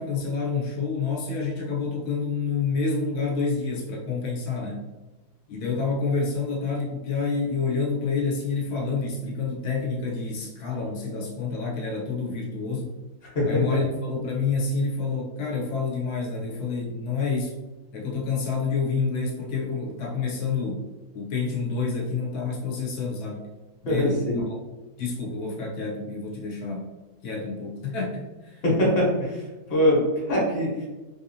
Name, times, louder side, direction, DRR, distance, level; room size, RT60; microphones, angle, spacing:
voice 1, 0.0-4.9 5.5-12.9 13.4-17.6 17.9-20.8 21.1-23.5 23.8-24.6 25.0-26.9 27.2-28.6, left 4 dB, 75° left, -2 dB, 1.3 m, -28 dB
voice 2, 23.8-24.5 28.6-29.4 29.7-30.9, left 1 dB, 40° left, -4 dB, 1.3 m, -22 dB
3.5 x 2.8 x 2.6 m, 1.1 s
omnidirectional pair, 1.7 m